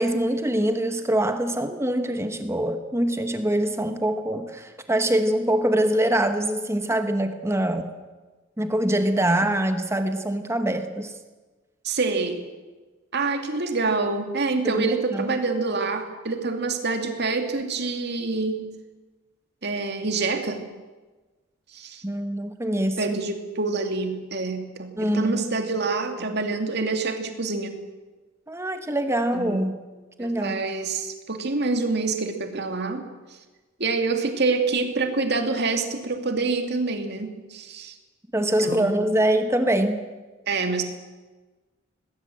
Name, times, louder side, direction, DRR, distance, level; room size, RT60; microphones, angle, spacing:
voice 1, 0.0-7.9 8.6-11.1 14.6-15.4 22.0-23.2 25.0-25.5 28.5-29.7 30.2-30.6 38.3-40.0, right 1 dB, 15° right, 8 dB, 1.2 m, -24 dB
voice 2, 11.8-12.4 13.1-18.7 19.6-20.6 21.7-22.0 23.0-27.8 29.3-29.6 30.2-33.0 33.8-38.0 38.4-39.0 40.5-40.8, right 3 dB, 55° right, 6 dB, 2.4 m, -26 dB
19.5 x 17.5 x 7.7 m, 1.3 s
head